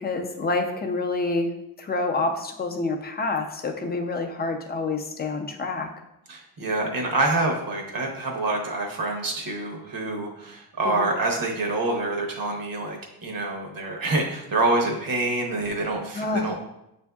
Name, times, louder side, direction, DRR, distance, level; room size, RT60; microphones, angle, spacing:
voice 1, 0.0-1.5 1.8-5.9 10.8-11.1 16.1-16.5, left 3 dB, 25° left, 4 dB, 0.4 m, -27 dB
voice 2, 6.3-16.6, right 2 dB, 60° right, 0 dB, 0.9 m, -26 dB
6.8 x 2.6 x 2.3 m, 0.85 s
wide cardioid pair, 125°, 38 cm